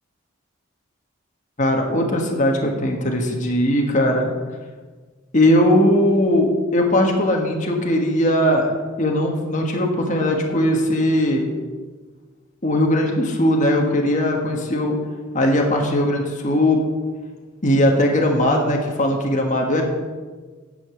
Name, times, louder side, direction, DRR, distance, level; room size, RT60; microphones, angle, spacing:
voice 1, 1.6-4.3 5.3-11.5 12.6-14.9 15.3-16.8 17.6-19.8, left 1 dB, 40° left, 1 dB, 1.5 m, -19 dB
9.9 x 7.0 x 7.1 m, 1.4 s
head